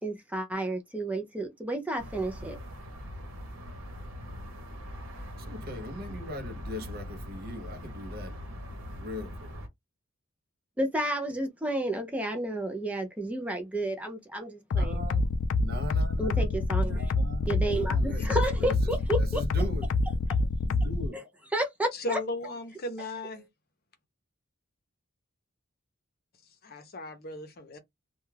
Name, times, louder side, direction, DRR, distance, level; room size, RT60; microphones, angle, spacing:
voice 1, 0.0-2.6 10.8-15.0 16.2-17.1 17.5-19.4 21.1-21.2 21.5-22.2, right 1 dB, 5° right, 0.4 m, -31 dB
sound 1, 2.0-9.7, left 1 dB, 90° right, 0.9 m, -42 dB
voice 2, 5.4-8.4 8.8-9.6 14.8-15.3 15.6-19.9 20.7-21.3, left 1 dB, 45° right, 0.7 m, -40 dB
sound 2, 14.7-21.1, left 3 dB, 85° left, 0.4 m, -26 dB
voice 3, 21.9-23.5 26.6-27.8, left 2 dB, 50° left, 0.7 m, -36 dB
2.3 x 2.2 x 3.2 m
head